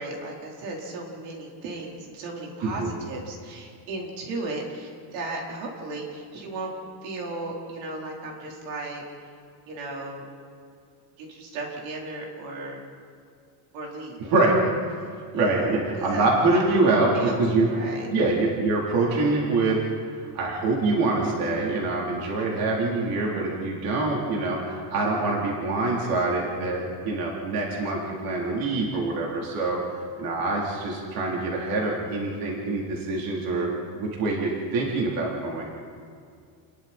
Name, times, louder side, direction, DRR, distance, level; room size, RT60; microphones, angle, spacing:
voice 1, 0.0-6.7 7.0-9.0 9.7-10.2 11.2-12.8 13.7-14.3 15.0-18.1, right 2 dB, 75° right, -1 dB, 4.4 m, -35 dB
voice 2, 14.2-14.6 15.3-17.7 18.1-19.8 20.1-29.8 30.2-35.7, right 3 dB, 50° right, -3 dB, 3.9 m, -25 dB
30.0 x 21.5 x 4.5 m, 2.3 s
cardioid pair, 165°, 45 cm